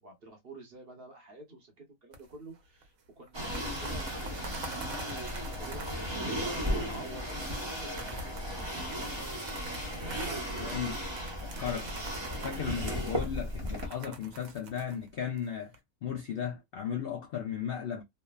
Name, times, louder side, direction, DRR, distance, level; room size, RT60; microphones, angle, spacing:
voice 1, 0.0-5.2 5.6-9.3 10.0-10.9, right 1 dB, 50° right, 1.0 m, -49 dB
sound 1, 2.1-2.6 2.8-2.9 3.3-15.8, right 3 dB, 80° right, 1.2 m, -47 dB
sound 2, 3.3-13.9, equal, 25° right, 0.7 m, -35 dB
voice 2, 10.6-11.0 11.4-12.0 12.4-15.8 16.0-18.0, left 8 dB, 65° left, 0.5 m, -36 dB
3.1 x 2.0 x 2.2 m
omnidirectional pair, 1.5 m